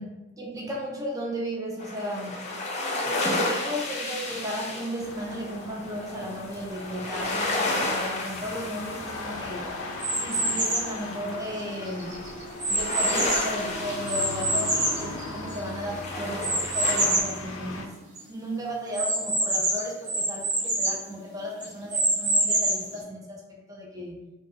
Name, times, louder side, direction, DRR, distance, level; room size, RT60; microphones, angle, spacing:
voice 1, 0.0-2.5 3.0-9.8 10.2-12.3 12.7-24.2, equal, 15° right, -2 dB, 0.4 m, -35 dB
sound 1, 1.8-17.2, left 2 dB, 35° left, 0.5 m, -33 dB
sound 2, 5.0-17.9, left 2 dB, 80° left, 0.5 m, -39 dB
sound 3, 10.0-11.0 11.6-13.6 14.1-15.8 16.4-17.4 17.8-17.9 18.2-18.3 18.9-21.0 21.6-23.0, right 1 dB, 35° right, 0.8 m, -26 dB
2.4 x 2.4 x 4.0 m, 1.1 s
head